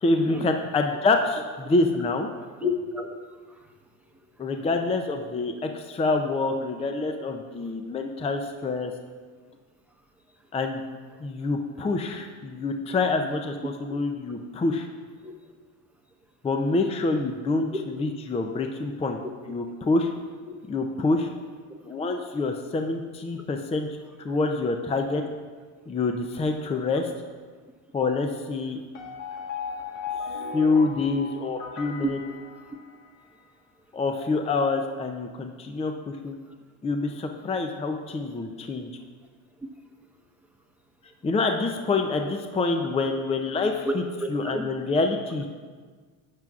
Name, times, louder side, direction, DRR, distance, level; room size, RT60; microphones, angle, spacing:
voice 1, 0.0-2.3 4.4-8.9 10.5-10.8 11.2-14.9 16.4-17.7 18.0-19.2 19.5-20.1 20.7-21.3 21.8-23.9 24.2-25.2 25.9-27.1 27.9-28.8 30.5-32.2 33.9-36.4 36.8-38.9 41.2-43.9 44.3-45.5, left 3 dB, 15° left, 4 dB, 0.5 m, -26 dB
voice 2, 2.6-3.1 3.5-3.6 12.1-12.2 15.2-15.3 20.4-20.5 24.3-24.4 32.0-32.1 43.8-44.6, left 1 dB, 5° right, 2 dB, 1.0 m, -30 dB
sound 1, 28.9-33.3, left 5 dB, 75° left, 1.5 m, -36 dB
13.0 x 9.2 x 2.4 m, 1.5 s
supercardioid pair, 105°, 40 cm